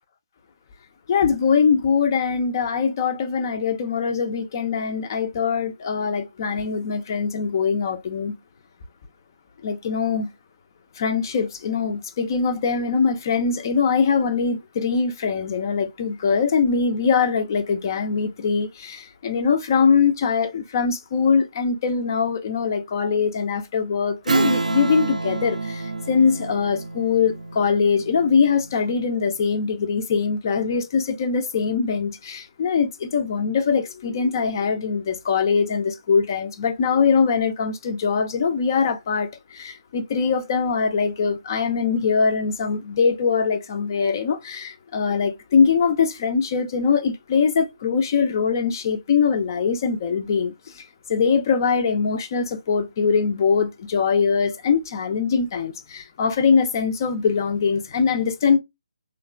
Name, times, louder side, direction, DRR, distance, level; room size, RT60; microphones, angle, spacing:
voice 1, 1.1-8.4 9.6-10.3 11.0-50.8 51.1-58.6, left 5 dB, 30° left, 0.3 m, -22 dB
Strum, 24.3-29.2, right 3 dB, 90° right, 0.5 m, -27 dB
3.0 x 2.0 x 2.2 m
hypercardioid pair, 160°, 4 cm